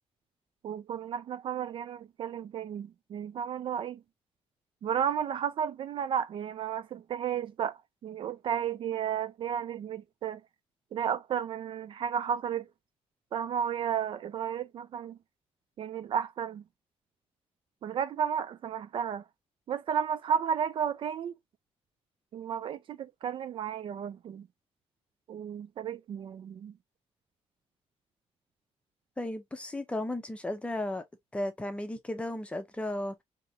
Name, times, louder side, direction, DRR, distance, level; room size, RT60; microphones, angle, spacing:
voice 1, 0.6-4.0 4.8-10.4 10.9-12.7 13.3-15.2 15.8-16.6 17.8-19.3 19.7-21.3 22.3-24.5 25.3-26.7, right 8 dB, 50° right, 0.4 m, -33 dB
voice 2, 29.2-31.0 31.3-33.2, left 1 dB, 10° left, 0.7 m, -34 dB
4.7 x 2.9 x 2.7 m
cardioid pair, 180°, 11 cm